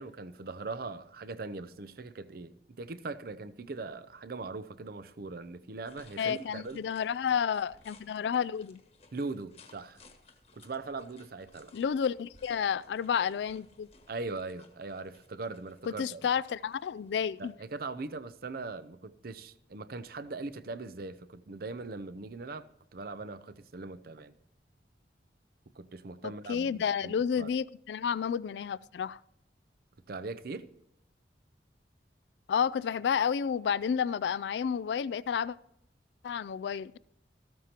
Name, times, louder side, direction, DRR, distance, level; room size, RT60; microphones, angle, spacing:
voice 1, 0.0-6.8 9.1-10.0 10.5-11.7 14.1-16.3 17.4-22.7 22.9-24.3 25.7-27.5 30.1-30.7, right 3 dB, 60° right, 0.6 m, -40 dB
sound 1, 5.9-17.6, left 4 dB, 35° left, 1.3 m, -61 dB
voice 2, 6.2-8.8 11.7-13.9 15.9-17.5 26.2-29.2 32.5-35.6 36.2-37.0, left 7 dB, 75° left, 0.3 m, -31 dB
14.0 x 13.0 x 2.9 m
head